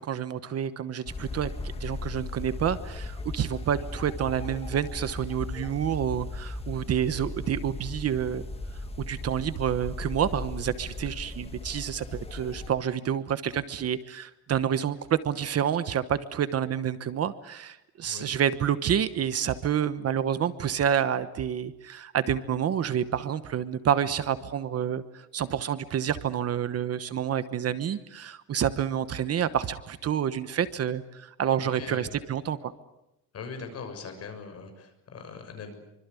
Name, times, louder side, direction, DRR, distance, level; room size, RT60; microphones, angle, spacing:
voice 1, 0.0-8.4 9.0-32.7, right 9 dB, 40° right, 13 dB, 1.1 m, -28 dB
sound 1, 1.1-12.7, left 2 dB, 15° left, 1.7 m, -37 dB
voice 2, 31.7-32.1 33.3-35.7, left 5 dB, 40° left, 6 dB, 6.7 m, -40 dB
25.5 x 25.0 x 8.4 m, 0.89 s
cardioid pair, 170°, 36 cm